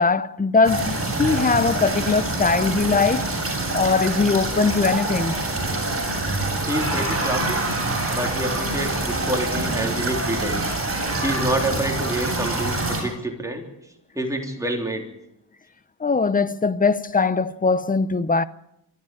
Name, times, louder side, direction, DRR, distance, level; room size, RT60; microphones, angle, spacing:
voice 1, 0.0-3.3 3.7-5.4 16.0-18.4, left 4 dB, 20° left, 0.7 m, -21 dB
sound 1, 0.6-13.0, right 2 dB, 35° right, 7.5 m, -25 dB
voice 2, 6.7-7.6 8.1-10.7 11.2-13.7 14.2-15.1, right 1 dB, 10° right, 3.6 m, -27 dB
24.5 x 12.5 x 8.7 m
wide cardioid pair, 150°, 40 cm